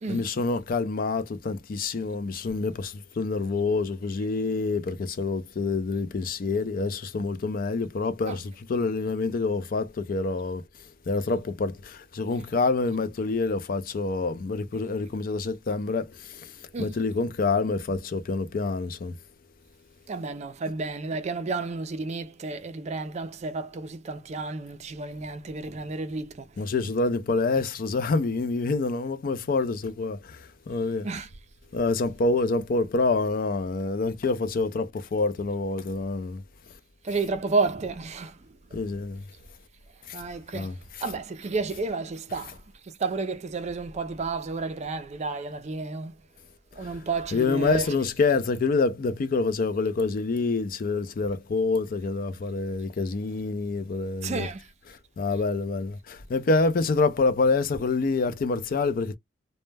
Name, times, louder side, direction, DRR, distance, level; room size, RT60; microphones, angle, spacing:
voice 1, 0.1-10.6 11.1-16.1 16.8-19.1 26.6-30.2 30.7-31.1 31.7-36.4 38.7-39.2 40.5-40.8 47.3-54.5 55.2-59.2, left 3 dB, 50° left, 0.4 m, -27 dB
voice 2, 20.1-26.5 31.0-31.3 37.0-38.4 38.7-38.8 40.1-40.7 41.0-42.6 42.8-46.1 46.7-48.1 54.2-54.7, right 3 dB, 35° right, 0.4 m, -31 dB
2.1 x 2.0 x 3.2 m
head